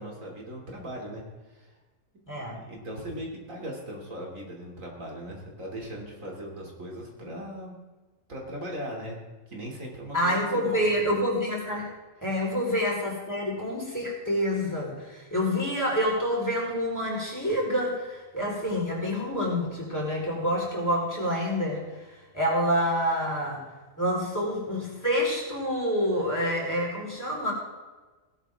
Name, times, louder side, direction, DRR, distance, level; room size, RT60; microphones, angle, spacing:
voice 1, 0.0-1.7 2.1-2.2 2.5-7.8 8.3-9.2 9.5-10.8, equal, 85° right, -1 dB, 3.4 m, -39 dB
voice 2, 2.3-2.6 10.1-11.9 12.2-21.8 22.3-23.6 24.0-27.5, equal, 15° left, -4 dB, 4.3 m, -27 dB
17.0 x 12.5 x 3.7 m, 1.2 s
omnidirectional pair, 1.3 m